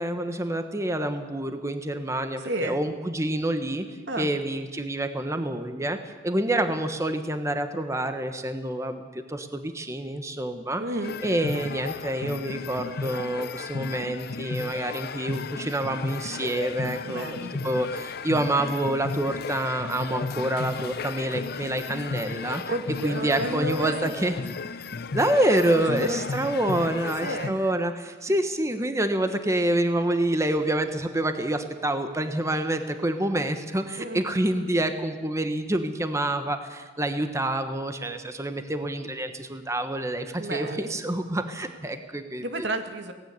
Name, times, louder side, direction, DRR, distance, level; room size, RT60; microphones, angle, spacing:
voice 1, 0.0-3.8 4.2-6.0 6.2-10.8 11.2-17.3 17.6-22.6 23.0-24.4 25.1-42.4, right 1 dB, 15° right, 7 dB, 1.2 m, -27 dB
voice 2, 2.4-2.8 4.1-4.3 10.8-11.2 17.0-17.5 22.7-24.4 24.8-24.9 25.7-26.3 27.2-27.8 34.0-34.3 40.4-41.0 42.4-43.1, right 1 dB, 85° right, 6 dB, 2.1 m, -32 dB
sound 1, 11.0-27.5, left 4 dB, 60° left, 0.6 m, -34 dB
17.5 x 16.5 x 9.5 m, 1.4 s
head